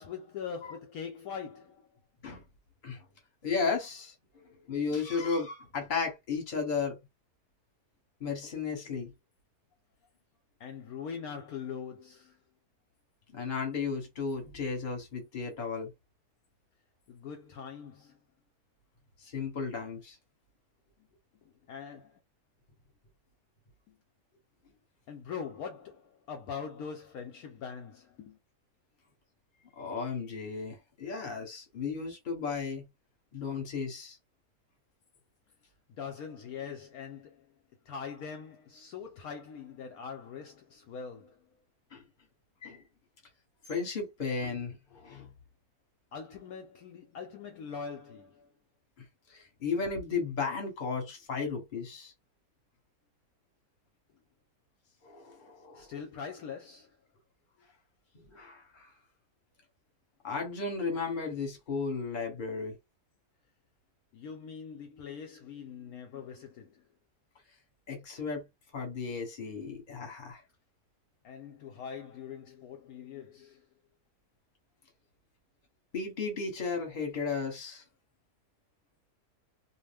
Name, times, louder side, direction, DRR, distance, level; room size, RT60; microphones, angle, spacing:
voice 1, 0.0-2.0 10.6-12.4 17.1-18.2 21.0-21.1 21.4-22.2 23.9-24.0 25.1-28.4 35.9-37.5 37.9-41.5 46.1-48.5 55.7-57.0 64.1-66.9 71.2-73.7, left 6 dB, 70° left, 1.0 m, -42 dB
voice 2, 3.4-4.1 4.7-7.0 8.2-9.1 13.3-15.9 19.2-20.2 29.8-32.8 33.3-34.2 41.9-42.0 42.6-42.8 43.7-45.3 49.3-52.1 55.0-55.9 58.3-58.9 60.2-62.8 67.9-68.4 68.7-70.4 75.9-77.8, left 5 dB, 35° left, 1.1 m, -34 dB
2.7 x 2.1 x 3.3 m
omnidirectional pair, 1.7 m